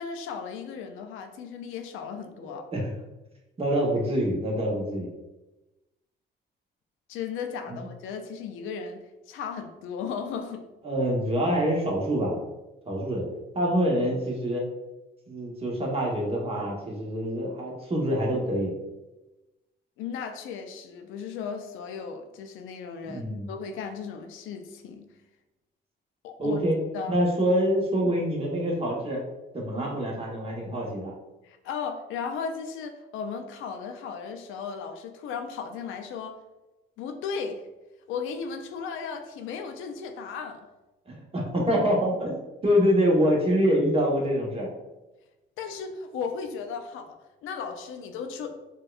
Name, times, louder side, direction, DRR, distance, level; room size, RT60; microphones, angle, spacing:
voice 1, 0.0-2.6 7.1-10.7 20.0-25.1 26.2-26.6 26.9-27.2 31.4-36.4 37.0-37.7 38.1-40.6 45.6-48.6, left 6 dB, 85° left, 6 dB, 0.4 m, -36 dB
voice 2, 2.4-2.9 3.6-5.1 7.7-7.8 10.8-12.4 12.9-13.2 13.5-14.6 15.3-18.7 23.0-23.5 26.4-26.8 27.1-29.2 29.5-31.1 41.1-42.4 42.6-44.7, equal, 30° right, -2 dB, 1.0 m, -25 dB
4.3 x 2.3 x 2.3 m, 1.0 s
cardioid pair, 90°, 20 cm